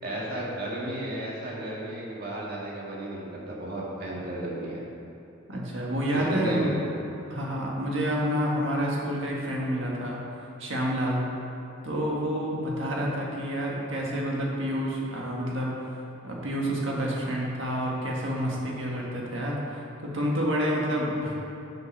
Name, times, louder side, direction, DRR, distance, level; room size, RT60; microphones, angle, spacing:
voice 1, 0.0-4.8 6.1-6.9 12.9-13.1, right 1 dB, 45° right, -5 dB, 1.9 m, -34 dB
voice 2, 5.5-6.7 7.3-10.2 10.6-11.2 11.8-15.9 16.2-21.3, equal, 65° right, -3 dB, 1.7 m, -29 dB
7.6 x 6.8 x 5.4 m, 2.9 s
head